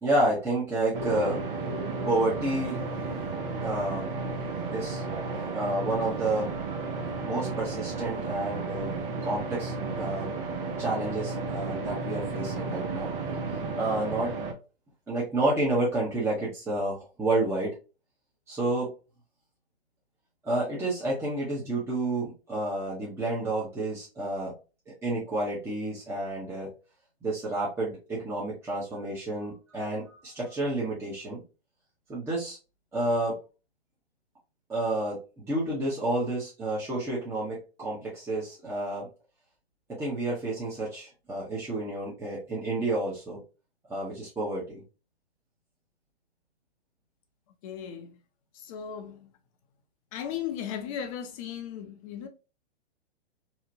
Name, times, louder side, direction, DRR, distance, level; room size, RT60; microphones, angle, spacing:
voice 1, 0.0-2.8 3.6-4.1 4.7-5.0 5.5-6.5 7.2-9.0 9.2-10.3 10.8-14.3 15.1-17.8 18.5-18.9 20.4-24.5 24.9-26.7 27.2-31.4 32.1-32.6 32.9-33.4 34.7-39.1 39.9-43.4 43.9-44.8, right 2 dB, 10° right, 0.7 m, -30 dB
sound 1, 0.9-14.5, right 4 dB, 55° right, 0.7 m, -33 dB
voice 2, 47.6-48.2 48.5-49.3 50.1-52.3, left 9 dB, 35° left, 0.5 m, -36 dB
2.8 x 2.1 x 2.5 m
figure-of-eight pair, 115°, 32 cm